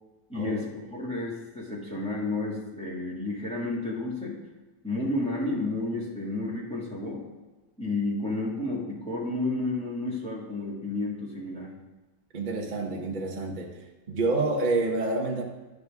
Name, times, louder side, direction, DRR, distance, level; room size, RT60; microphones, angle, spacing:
voice 1, 0.3-4.4 4.8-7.2 7.8-11.7, left 2 dB, 5° left, -5 dB, 1.9 m, -31 dB
voice 2, 12.3-13.8 14.1-15.4, right 3 dB, 35° right, 0 dB, 0.8 m, -28 dB
9.5 x 6.6 x 3.5 m, 1.2 s
omnidirectional pair, 2.0 m